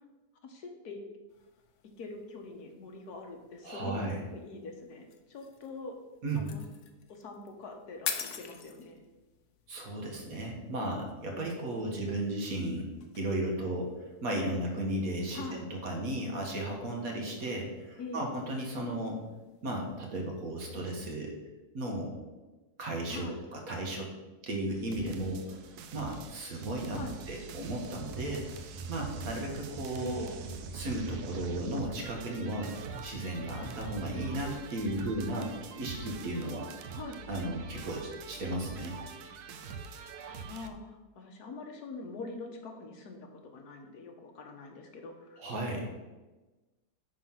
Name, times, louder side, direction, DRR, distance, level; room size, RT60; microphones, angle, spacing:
voice 1, 0.4-1.0 2.0-6.0 6.3-6.6 7.1-9.0 15.3-15.7 18.0-18.3 23.1-23.4 26.9-27.2 30.0-30.4 36.9-37.2 40.4-45.4, left 3 dB, 85° left, 3 dB, 1.7 m, -43 dB
sound 1, 1.3-20.7, left 7 dB, 60° left, 1.0 m, -48 dB
voice 2, 3.6-4.2 6.2-6.5 9.7-13.9 14.2-19.2 19.6-21.3 21.7-22.1 22.8-24.1 24.4-25.6 25.9-27.0 27.3-30.3 30.7-32.7 33.0-36.7 37.3-39.0 45.4-45.9, right 1 dB, 65° right, 0 dB, 1.9 m, -35 dB
sound 2, 24.7-40.7, right 5 dB, 85° right, 1.2 m, -44 dB
sound 3, 28.2-34.6, right 2 dB, 20° right, 0.4 m, -46 dB
9.8 x 3.9 x 5.8 m, 1.2 s
omnidirectional pair, 1.6 m